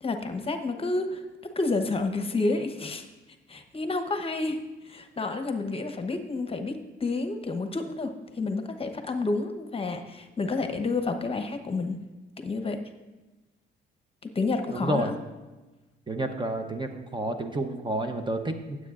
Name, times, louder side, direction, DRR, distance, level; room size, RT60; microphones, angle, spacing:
voice 1, 0.0-3.1 3.5-12.0 12.4-12.8 14.3-15.2, left 3 dB, 30° left, 7 dB, 0.9 m, -30 dB
voice 2, 14.7-15.1 16.1-18.8, right 1 dB, 25° right, 6 dB, 0.8 m, -30 dB
16.0 x 7.8 x 2.5 m, 1.1 s
cardioid pair, 90°, 20 cm